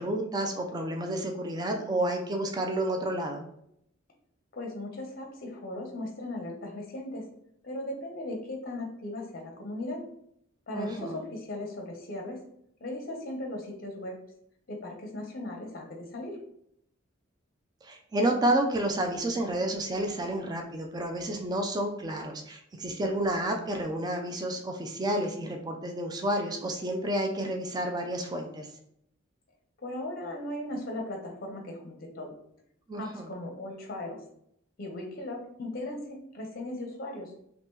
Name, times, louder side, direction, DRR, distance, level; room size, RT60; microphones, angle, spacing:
voice 1, 0.0-3.4 10.7-11.2 17.8-28.7 32.9-33.3, right 1 dB, 20° right, 3 dB, 0.4 m, -30 dB
voice 2, 4.5-7.3 7.6-10.0 10.7-12.4 12.8-14.2 14.7-16.4 29.8-32.3 33.0-34.2 34.8-37.3, left 1 dB, 50° left, 2 dB, 0.6 m, -37 dB
2.9 x 2.8 x 3.6 m, 0.74 s
head